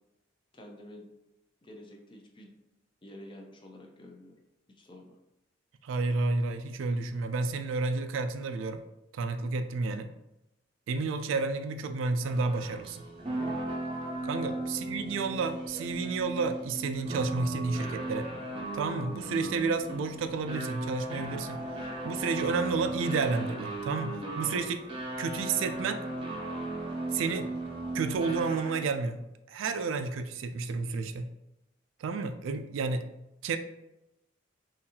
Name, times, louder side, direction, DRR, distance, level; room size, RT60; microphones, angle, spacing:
voice 1, 0.5-1.1 1.6-2.5 3.0-4.4 4.8-5.2 14.3-14.7, left 1 dB, 25° left, 2 dB, 0.5 m, -49 dB
voice 2, 5.8-8.8 9.1-10.1 10.9-13.1 14.2-18.3 18.7-21.6 22.0-24.9 25.2-26.0 27.1-27.5 27.9-31.3 32.0-33.1 33.4-33.6, right 4 dB, 75° right, 8 dB, 0.3 m, -31 dB
sound 1, 12.2-29.0, right 2 dB, 25° right, 0.6 m, -36 dB
3.8 x 2.6 x 2.8 m, 0.89 s
head